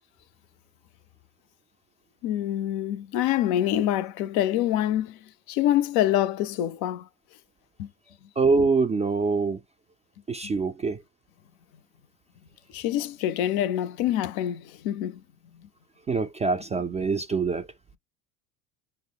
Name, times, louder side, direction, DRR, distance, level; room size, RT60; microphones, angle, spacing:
voice 1, 2.2-5.2 5.5-7.1 7.8-7.9 12.7-15.2, left 12 dB, 55° left, 0.5 m, -26 dB
voice 2, 8.4-9.6 10.3-11.0 16.1-17.7, right 4 dB, 15° right, 0.3 m, -24 dB
5.6 x 2.0 x 3.4 m
hypercardioid pair, 80°, 45 cm